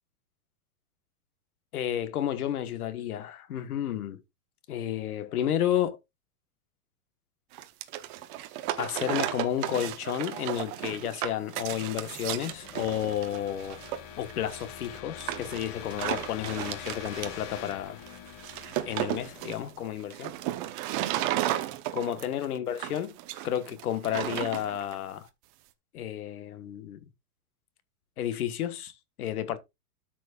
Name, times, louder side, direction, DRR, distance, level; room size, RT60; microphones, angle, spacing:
voice 1, 1.7-4.2 4.7-6.0 8.8-13.8 14.2-18.0 18.8-20.3 21.9-23.2 23.4-25.3 25.9-27.0 28.2-29.6, left 10 dB, 75° left, 1.5 m, -31 dB
sound 1, 7.5-25.0, right 14 dB, 35° right, 0.9 m, -34 dB
sound 2, 10.8-20.6, left 10 dB, 30° left, 0.9 m, -46 dB
13.0 x 6.2 x 2.4 m
hypercardioid pair, 150°, 45 cm